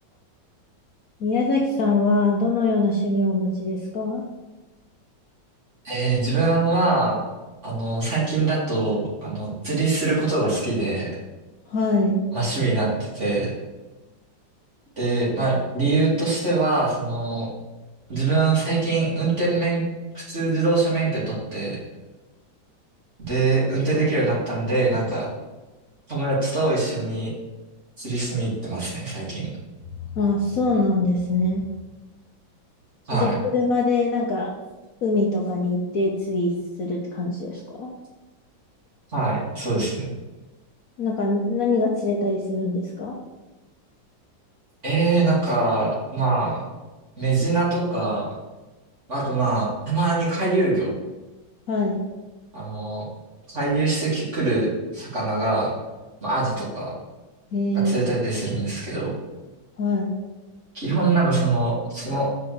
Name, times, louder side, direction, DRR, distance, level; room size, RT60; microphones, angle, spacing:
voice 1, 1.2-4.2 11.7-12.2 30.1-31.7 33.1-34.5 35.0-37.9 41.0-43.2 51.7-52.0 57.5-57.9 59.8-60.2, left 2 dB, 55° left, -1 dB, 1.2 m, -23 dB
voice 2, 5.8-7.2 7.6-11.1 12.3-13.5 15.0-17.5 18.1-19.8 20.1-21.8 23.3-25.3 26.1-27.3 28.0-29.5 33.1-33.4 39.1-40.1 44.8-46.6 47.2-48.3 49.1-50.9 52.5-53.1 53.5-54.7 54.9-55.7 56.2-56.9 57.8-59.1 60.7-62.3, right 3 dB, 35° right, -7 dB, 3.2 m, -23 dB
5.7 x 5.4 x 6.7 m, 1.1 s
omnidirectional pair, 2.1 m